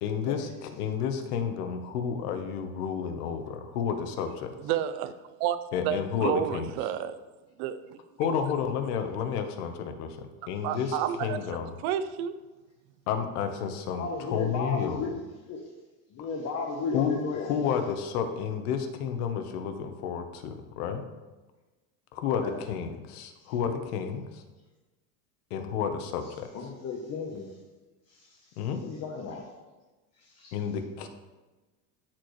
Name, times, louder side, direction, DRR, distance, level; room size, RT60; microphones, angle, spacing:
voice 1, 0.0-4.5 5.7-6.7 8.2-11.7 13.1-15.1 16.9-21.0 22.1-24.4 25.5-26.5 28.6-28.8 30.5-31.1, left 7 dB, 80° left, 7 dB, 1.1 m, -31 dB
voice 2, 4.6-5.1 5.4-5.6 5.8-7.2 7.6-8.0 10.6-11.4 11.8-12.4, right 10 dB, 65° right, 12 dB, 0.7 m, -30 dB
voice 3, 13.9-15.6 16.1-17.5 22.2-22.6 23.4-23.5 26.5-27.5 28.1-29.5 30.2-30.5, left 4 dB, 35° left, -1 dB, 1.0 m, -35 dB
13.5 x 4.5 x 3.2 m, 1.2 s
supercardioid pair, 140°, 44 cm